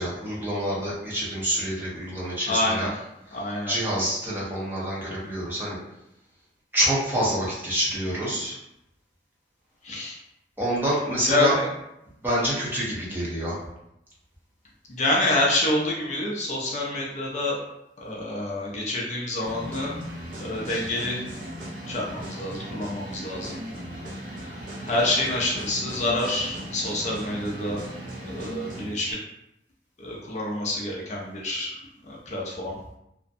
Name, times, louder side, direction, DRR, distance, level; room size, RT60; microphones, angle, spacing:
voice 1, 0.0-2.9 3.7-5.8 6.7-8.6 10.6-11.6 12.2-13.6, right 1 dB, 10° right, -7 dB, 0.7 m, -27 dB
voice 2, 2.5-3.0 3.3-3.7 9.8-10.2 11.3-11.7 14.9-17.6 18.0-20.0 20.4-21.2 21.9-23.6 24.4-24.6 24.8-27.8 28.2-29.2 30.0-31.8 32.0-32.7, left 2 dB, 40° left, -3 dB, 0.4 m, -27 dB
sound 1, 19.4-29.1, equal, 50° right, 0.7 m, -37 dB
2.5 x 2.1 x 2.5 m, 0.83 s
head